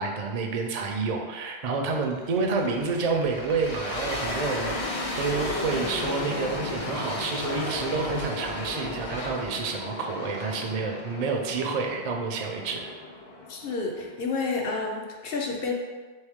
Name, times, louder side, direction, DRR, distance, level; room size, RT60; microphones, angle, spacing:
voice 1, 0.0-12.9, right 4 dB, 50° right, 2 dB, 0.5 m, -29 dB
sound 1, 1.9-10.6, right 4 dB, 80° right, 0.9 m, -42 dB
sound 2, 3.2-14.2, left 2 dB, 45° left, 0.5 m, -34 dB
voice 2, 13.5-15.7, left 4 dB, 65° left, 0 dB, 0.8 m, -30 dB
3.3 x 3.2 x 3.5 m, 1.4 s
omnidirectional pair, 1.1 m